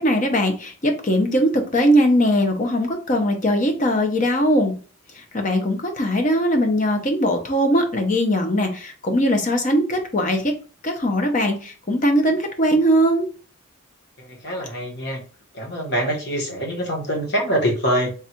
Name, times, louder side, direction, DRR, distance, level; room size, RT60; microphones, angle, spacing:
voice 1, 0.0-4.7 5.1-10.5 10.8-13.3, equal, 35° left, 4 dB, 0.7 m, -20 dB
voice 2, 14.4-15.2 15.6-18.1, equal, 55° left, 0 dB, 1.2 m, -24 dB
3.5 x 2.4 x 4.3 m, 0.38 s
head